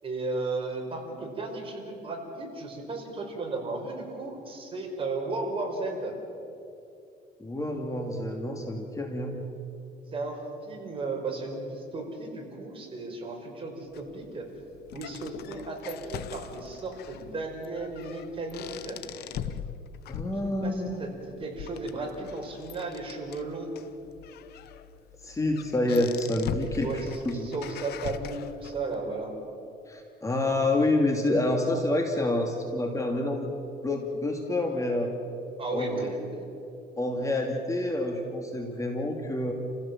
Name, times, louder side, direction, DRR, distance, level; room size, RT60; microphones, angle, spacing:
voice 1, 0.0-6.2 10.1-14.5 14.9-19.0 20.6-23.7 26.5-29.3 35.6-36.2, right 3 dB, 30° right, 1 dB, 5.3 m, -35 dB
voice 2, 7.4-9.3 20.1-21.1 25.2-27.5 29.9-33.5 33.8-35.1 35.7-36.1 37.0-39.5, left 1 dB, 20° left, 2 dB, 2.5 m, -28 dB
sound 1, 13.9-28.9, left 9 dB, 70° left, 1.1 m, -41 dB
29.5 x 16.0 x 7.4 m, 2.7 s
cardioid pair, 110°, 17 cm